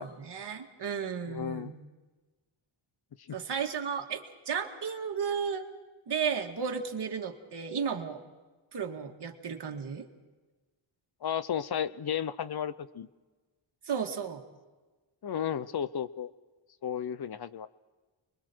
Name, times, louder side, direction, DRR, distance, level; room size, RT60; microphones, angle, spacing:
voice 1, 0.0-1.8 3.3-5.7 6.1-8.2 8.7-10.1 13.8-14.4, right 6 dB, 55° right, 3 dB, 2.1 m, -34 dB
voice 2, 1.3-1.7 3.3-3.4 11.2-13.1 15.2-16.3 16.8-17.7, left 9 dB, 50° left, 16 dB, 0.7 m, -33 dB
30.0 x 22.0 x 4.6 m, 1.3 s
wide cardioid pair, 135°, 49 cm